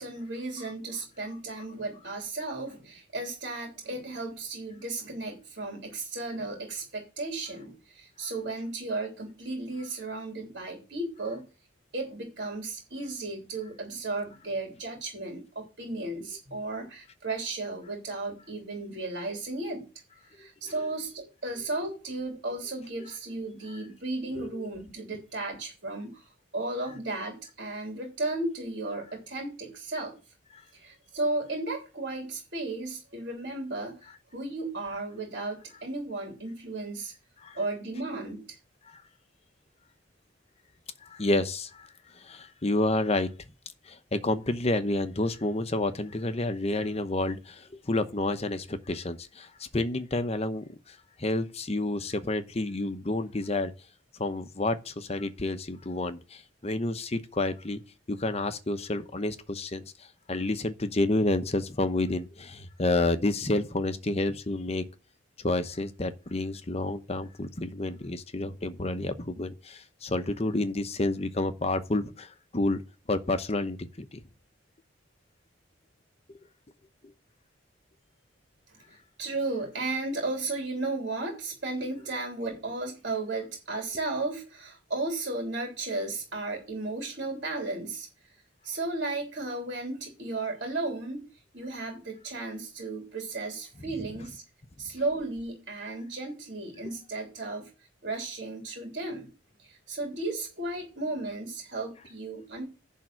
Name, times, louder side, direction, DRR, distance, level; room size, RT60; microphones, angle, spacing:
voice 1, 0.0-11.5 11.9-19.9 20.3-30.2 30.7-34.0 34.3-37.1 37.5-38.6 78.7-88.3 88.6-91.2 91.5-94.4 94.8-97.7 98.0-99.3 99.6-102.7, right 2 dB, 55° right, 3.2 m, -34 dB
voice 2, 24.3-24.7 37.4-37.6 41.0-41.9 42.1-43.3 43.9-53.7 54.2-57.8 58.1-59.8 60.3-64.8 65.4-72.8 73.1-74.2, left 2 dB, 35° left, 0.9 m, -29 dB
10.5 x 3.7 x 7.5 m
head